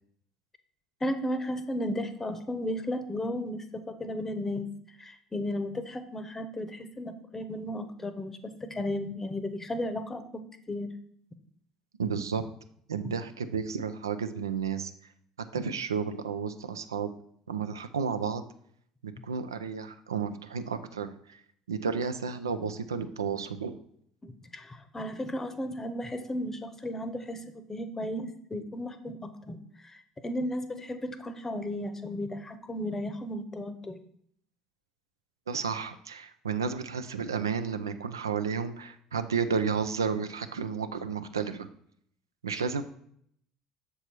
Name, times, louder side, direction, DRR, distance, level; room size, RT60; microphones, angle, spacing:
voice 1, 1.0-4.7 5.0-10.4 10.7-10.9 24.2-27.4 27.7-34.0, left 1 dB, 20° left, 10 dB, 0.8 m, -34 dB
voice 2, 12.0-12.4 12.9-14.9 15.5-17.1 17.5-18.4 19.0-21.4 21.7-23.8 35.5-41.7 42.4-42.8, right 6 dB, 80° right, 10 dB, 0.4 m, -32 dB
6.8 x 4.5 x 4.4 m, 0.67 s
figure-of-eight pair, 65°, 2 cm